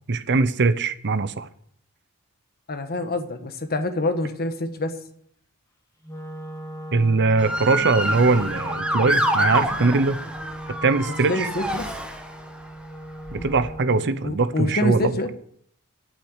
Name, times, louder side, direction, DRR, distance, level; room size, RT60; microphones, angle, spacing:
voice 1, 0.1-1.5 6.9-10.2 10.8-11.5 13.3-15.1, right 3 dB, 55° right, 13 dB, 0.8 m, -21 dB
voice 2, 2.7-4.9 11.3-11.9 13.3-13.5 14.2-15.3, left 2 dB, 45° left, 7 dB, 1.3 m, -26 dB
Wind instrument woodwind instrument, 6.0-14.2, right 1 dB, 15° left, 1.9 m, -39 dB
Motor vehicle (road) / Siren, 7.4-12.6 13.3-13.7, equal, 5° right, 1.3 m, -27 dB
9.0 x 8.8 x 8.0 m, 0.67 s
head